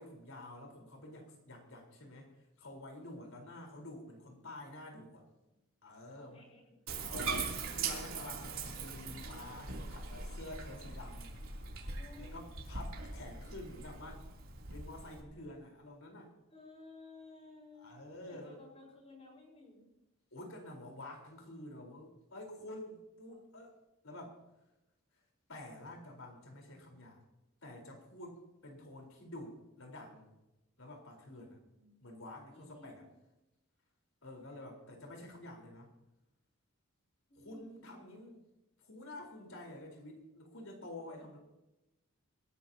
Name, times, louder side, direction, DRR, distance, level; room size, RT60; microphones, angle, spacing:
voice 1, 0.0-5.2 5.8-6.4 7.0-11.4 12.2-14.2 14.7-16.3 17.8-18.6 20.3-23.7 24.0-24.4 25.5-27.2 27.6-30.3 30.8-31.6 32.0-33.1 34.2-35.9 37.4-38.4 38.9-41.4, left 1 dB, 75° left, 2 dB, 4.2 m, -49 dB
voice 2, 6.1-6.8 12.0-12.4 16.5-18.0 18.3-19.9 31.3-31.4 31.7-32.0 32.5-33.1 37.3-38.0 41.1-41.2, left 2 dB, 30° left, -1 dB, 4.9 m, -56 dB
Bathtub (filling or washing), 6.9-15.2, right 4 dB, 75° right, 3.0 m, -41 dB
25.5 x 13.5 x 2.8 m, 0.95 s
head